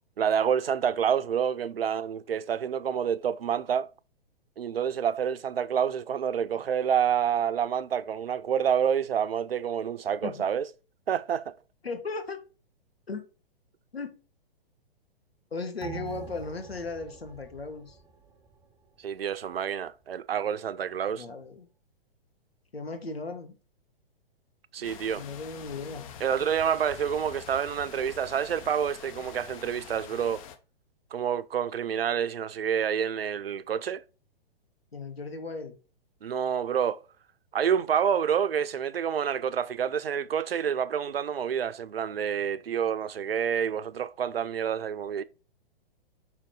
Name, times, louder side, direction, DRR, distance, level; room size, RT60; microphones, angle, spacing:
voice 1, 0.2-3.9 4.6-10.7 11.1-11.5 19.0-21.3 24.7-25.2 26.2-30.4 31.1-34.0 36.2-37.0 37.5-45.2, right 8 dB, 75° right, 0.6 m, -28 dB
voice 2, 11.8-12.4 13.1-13.2 13.9-14.1 15.5-18.0 21.1-21.7 22.7-23.5 24.8-24.9 25.2-26.1 34.9-35.8, left 3 dB, 80° left, 1.7 m, -36 dB
sound 1, 15.8-18.7 19.1-19.2, right 7 dB, 10° right, 0.9 m, -44 dB
sound 2, 24.8-30.6, left 8 dB, 35° left, 0.8 m, -46 dB
5.6 x 3.9 x 4.7 m
figure-of-eight pair, 115°, 30 cm